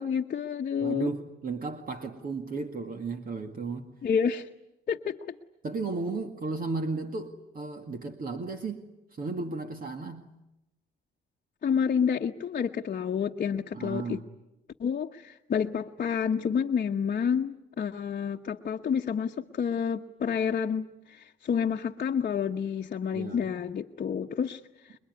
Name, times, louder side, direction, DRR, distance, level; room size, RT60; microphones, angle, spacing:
voice 1, 0.0-1.1 4.0-4.5 4.9-5.2 11.6-14.2 14.8-25.0, left 7 dB, 45° left, 1.1 m, -29 dB
voice 2, 0.8-3.9 5.6-10.3 13.7-14.2 23.1-23.5, right 3 dB, 45° right, 2.1 m, -34 dB
27.0 x 22.0 x 9.7 m
cardioid pair, 90°, 20 cm